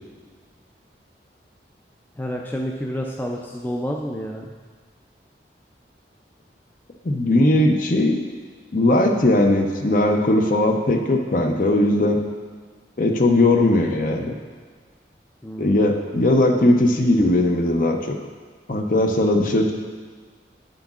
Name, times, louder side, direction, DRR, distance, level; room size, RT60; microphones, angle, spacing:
voice 1, 2.2-4.5 15.4-15.8, equal, 10° left, 0 dB, 0.4 m, -29 dB
voice 2, 7.0-8.2 8.7-12.2 13.0-14.4 15.6-18.0 18.7-19.7, left 1 dB, 50° left, 4 dB, 0.6 m, -18 dB
8.9 x 7.7 x 2.4 m, 1.5 s
head